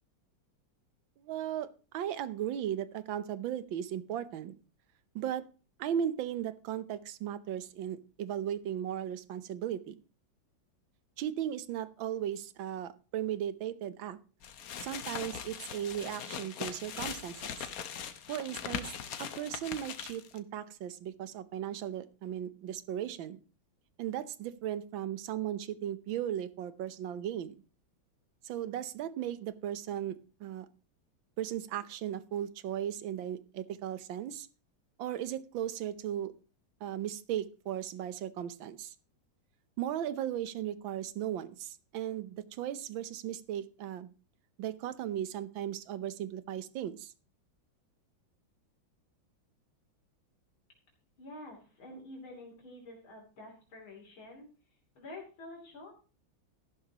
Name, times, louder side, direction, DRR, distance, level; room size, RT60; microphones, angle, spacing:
voice 1, 1.2-1.7 1.9-4.5 5.1-5.5 5.8-10.0 11.2-14.2 14.8-17.7 18.3-18.9 19.2-23.4 24.0-27.6 28.4-30.7 31.4-34.5 35.0-36.3 36.8-38.9 39.8-44.1 44.6-47.1, right 10 dB, 75° right, 14 dB, 1.6 m, -36 dB
sound 1, 14.4-20.4, left 8 dB, 55° left, 1.2 m, -40 dB
voice 2, 51.2-54.5 55.0-55.9, left 1 dB, 90° left, -1 dB, 3.9 m, -48 dB
14.5 x 11.5 x 2.9 m, 0.34 s
omnidirectional pair, 2.2 m